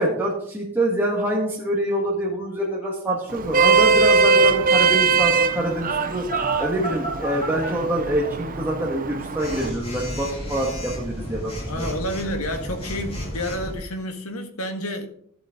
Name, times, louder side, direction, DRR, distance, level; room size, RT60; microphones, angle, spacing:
voice 1, 0.0-6.2 6.6-11.9, right 1 dB, 10° right, -4 dB, 1.8 m, -25 dB
Vehicle horn car horn honking, 3.3-9.7, right 4 dB, 40° right, 0.7 m, -21 dB
Telephone, 6.3-7.7 9.4-13.7, equal, 30° left, 3.9 m, -32 dB
voice 2, 11.7-15.1, equal, 85° left, 5 dB, 1.8 m, -29 dB
14.0 x 7.9 x 3.8 m, 0.65 s
head